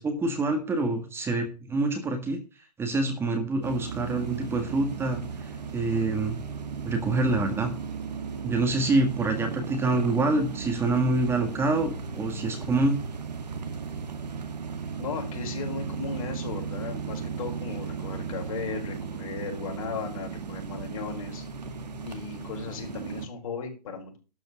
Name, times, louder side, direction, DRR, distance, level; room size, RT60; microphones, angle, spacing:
voice 1, 0.0-2.4 2.8-6.4 6.8-7.7 8.4-13.0, right 2 dB, 10° right, 5 dB, 1.6 m, -26 dB
sound 1, 3.6-23.3, right 5 dB, 80° right, 1.9 m, -36 dB
voice 2, 15.0-21.4 22.0-24.2, left 5 dB, 55° left, 1 dB, 5.1 m, -36 dB
12.5 x 5.3 x 7.0 m, 0.34 s
hypercardioid pair, 135°, 21 cm